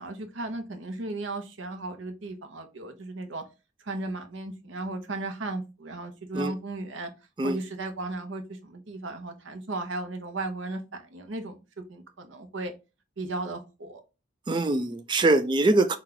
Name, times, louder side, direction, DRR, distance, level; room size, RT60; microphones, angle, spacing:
voice 1, 0.0-3.4 3.8-7.1 7.4-12.7 13.2-14.0, right 2 dB, 80° right, 0.8 m, -35 dB
voice 2, 14.5-16.0, right 2 dB, 25° right, 0.3 m, -23 dB
4.4 x 2.4 x 3.8 m
head